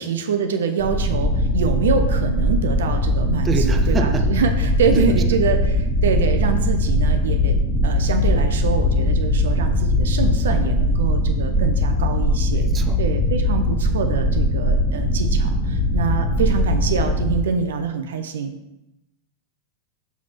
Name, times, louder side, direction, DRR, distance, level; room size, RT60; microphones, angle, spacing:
voice 1, 0.0-7.6 7.8-12.6 13.0-18.5, right 6 dB, 60° right, 7 dB, 0.6 m, -25 dB
sound 1, 0.8-17.4, left 1 dB, 10° left, 1.6 m, -20 dB
voice 2, 3.4-4.3 5.0-5.2 12.5-13.0 16.4-16.5, right 5 dB, 20° right, 6 dB, 0.7 m, -26 dB
5.9 x 5.9 x 4.3 m, 0.92 s
figure-of-eight pair, 90°, 0 cm